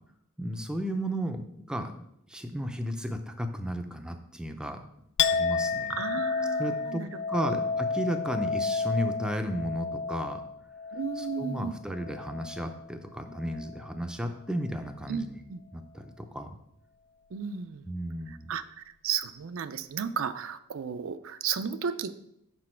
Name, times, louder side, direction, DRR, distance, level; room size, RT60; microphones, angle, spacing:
voice 1, 0.4-1.9 2.3-4.8 5.3-5.9 6.6-10.4 11.2-15.4 15.7-16.6 17.9-18.5, equal, 5° right, 6 dB, 0.5 m, -34 dB
Chink clink, 5.2-12.9 13.2-13.9, left 5 dB, 55° left, 0.3 m, -31 dB
voice 2, 5.9-7.1 7.5-7.6 10.9-11.8 15.1-15.6 17.3-17.9 18.3-18.6 19.0-22.1, right 7 dB, 75° right, 11 dB, 0.4 m, -34 dB
6.2 x 5.6 x 4.4 m, 0.76 s
head